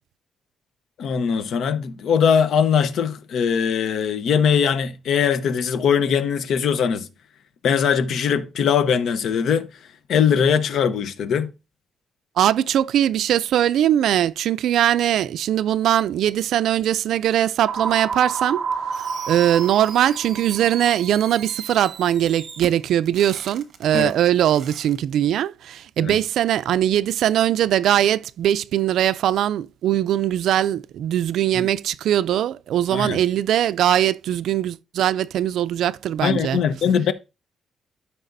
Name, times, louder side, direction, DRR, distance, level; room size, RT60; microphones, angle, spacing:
voice 1, 1.0-7.1 7.6-9.7 10.1-11.5 23.9-24.1 26.0-26.2 31.5-31.7 32.9-33.2 36.2-37.1, left 7 dB, 65° left, 0.8 m, -21 dB
voice 2, 12.4-18.6 19.0-36.6, right 11 dB, 75° right, 0.4 m, -21 dB
sound 1, 17.7-21.5, right 5 dB, 30° right, 0.7 m, -30 dB
Fireworks, 18.9-25.0, right 7 dB, 55° right, 1.4 m, -38 dB
13.0 x 5.9 x 2.6 m
cardioid pair, 145°, 0 cm